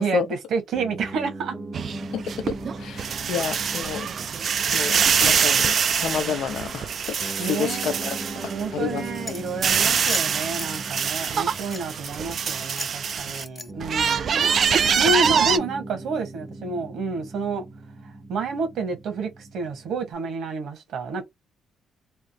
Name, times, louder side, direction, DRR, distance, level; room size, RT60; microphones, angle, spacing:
voice 1, 0.0-1.6 7.4-14.6 15.0-17.6 18.0-21.2, right 3 dB, 75° right, 1.3 m, -29 dB
Piano, 0.7-20.1, right 2 dB, 15° right, 0.7 m, -40 dB
sound 1, 1.7-8.7 9.1-13.4 13.8-15.6, right 7 dB, 55° right, 0.3 m, -24 dB
voice 2, 2.8-4.1 4.7-8.1 8.4-9.0 14.3-14.5, left 8 dB, 75° left, 0.7 m, -30 dB
sound 2, 9.3-10.7 11.2-12.1 12.4-13.9, left 4 dB, 30° left, 0.4 m, -38 dB
3.4 x 2.0 x 2.7 m
cardioid pair, 90°, 0 cm